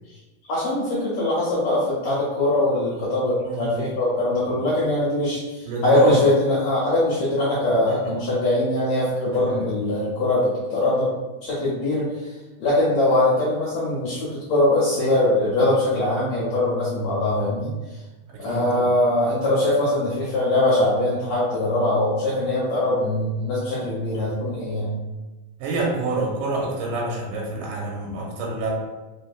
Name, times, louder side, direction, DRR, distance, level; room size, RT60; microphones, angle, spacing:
voice 1, 0.5-11.1 11.4-18.0 18.4-24.9, left 1 dB, 80° left, -8 dB, 1.5 m, -22 dB
voice 2, 3.4-3.8 4.5-4.6 5.7-6.2 7.7-8.1 9.3-9.7 18.3-18.9 25.6-28.7, right 3 dB, 85° right, -3 dB, 2.6 m, -27 dB
5.1 x 3.4 x 2.3 m, 1.2 s
omnidirectional pair, 4.2 m